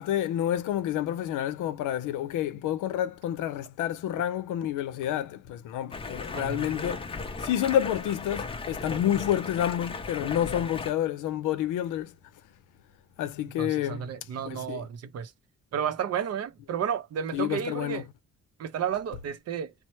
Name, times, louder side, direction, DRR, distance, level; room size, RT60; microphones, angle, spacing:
voice 1, 0.0-7.1 7.4-12.1 13.2-14.1 14.5-14.9 17.3-18.0, left 11 dB, 85° left, 0.5 m, -29 dB
Stream, 5.9-10.9, left 3 dB, 20° left, 0.5 m, -36 dB
voice 2, 6.3-6.7 13.6-15.3 15.7-18.1 18.6-19.7, right 8 dB, 55° right, 0.6 m, -32 dB
2.9 x 2.0 x 3.0 m
cardioid pair, 90°, 30 cm